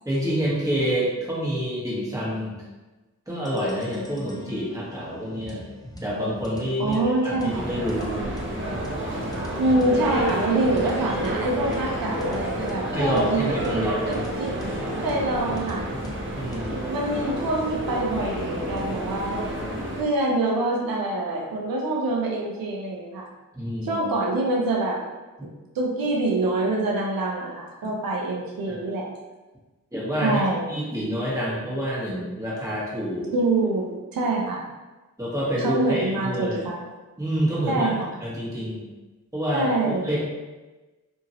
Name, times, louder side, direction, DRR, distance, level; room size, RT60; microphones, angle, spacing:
voice 1, 0.0-2.6 3.3-5.6 6.0-7.0 7.2-8.2 12.9-14.3 16.3-16.8 23.5-24.0 28.7-28.8 29.9-30.4 30.7-33.3 35.2-36.6 37.2-37.9 38.2-38.9 39.3-40.2, equal, 10° right, -7 dB, 1.2 m, -27 dB
sound 1, 3.4-18.8, equal, 10° left, 0.6 m, -42 dB
voice 2, 6.8-7.7 9.6-14.6 15.0-15.9 16.9-19.4 20.0-23.3 23.8-25.0 25.7-29.1 30.2-30.6 33.3-34.6 35.6-36.8 37.7-38.1 39.5-40.1, right 2 dB, 85° right, -1 dB, 0.6 m, -25 dB
sound 2, 7.4-20.0, right 1 dB, 35° right, 0.8 m, -30 dB
2.8 x 2.7 x 2.8 m, 1.2 s
cardioid pair, 55°, 34 cm